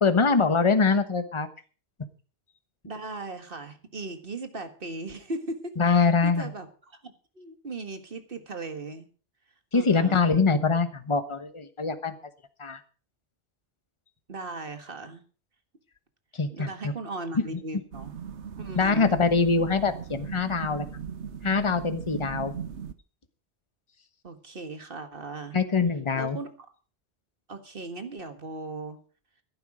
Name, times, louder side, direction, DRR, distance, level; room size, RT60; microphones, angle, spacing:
voice 1, 0.0-1.5 5.8-6.5 9.7-12.1 12.6-12.8 16.3-16.9 17.3-17.4 18.7-20.9 21.4-22.5 25.5-26.4, left 4 dB, 25° left, 10 dB, 1.2 m, -23 dB
voice 2, 2.9-9.1 9.7-10.3 14.3-15.2 16.5-18.1 18.6-19.1 24.2-25.6 26.1-26.5 27.5-29.0, right 2 dB, 55° right, 8 dB, 1.9 m, -38 dB
sound 1, 17.9-22.9, right 7 dB, 75° right, 1.3 m, -38 dB
14.0 x 11.5 x 4.9 m, 0.37 s
omnidirectional pair, 1.2 m